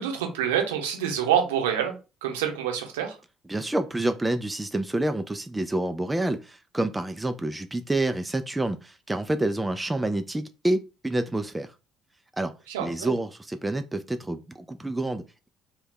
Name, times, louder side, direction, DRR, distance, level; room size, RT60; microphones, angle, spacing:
voice 1, 0.0-1.9 2.2-3.1 12.7-13.1, right 9 dB, 70° right, 3 dB, 0.7 m, -26 dB
voice 2, 3.5-11.7 12.4-12.5 12.8-15.5, right 1 dB, 15° right, 8 dB, 0.3 m, -28 dB
2.6 x 2.3 x 3.7 m, 0.31 s
figure-of-eight pair, 50°, 0 cm